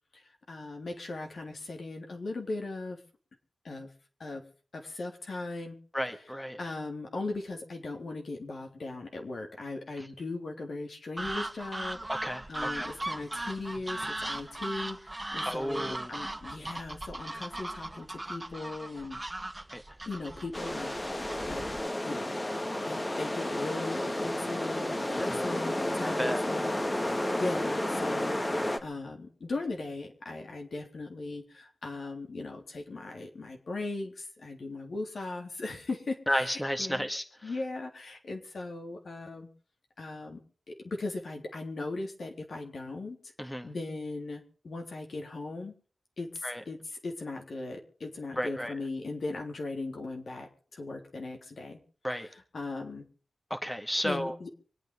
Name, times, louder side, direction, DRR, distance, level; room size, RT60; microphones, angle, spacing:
voice 1, 0.1-3.0 3.6-3.9 4.2-4.5 4.7-5.8 6.6-19.2 20.1-21.7 22.1-22.4 22.9-28.4 28.6-37.1 37.4-39.5 40.0-40.4 40.7-45.7 46.2-51.8 52.1-53.1 54.0-54.5, left 2 dB, 75° left, 2 dB, 3.5 m, -38 dB
voice 2, 5.9-6.6 12.1-12.9 15.5-16.3 19.7-19.8 25.1-25.5 26.0-26.4 36.3-37.5 43.4-43.7 46.4-46.6 48.4-48.7 52.0-52.3 53.5-54.4, equal, 10° left, 7 dB, 1.9 m, -33 dB
sound 1, 11.2-21.9, right 1 dB, 20° right, 1.7 m, -38 dB
sound 2, 20.5-28.8, left 1 dB, 30° left, 2.1 m, -31 dB
25.0 x 9.0 x 5.4 m, 0.43 s
cardioid pair, 50°, 0 cm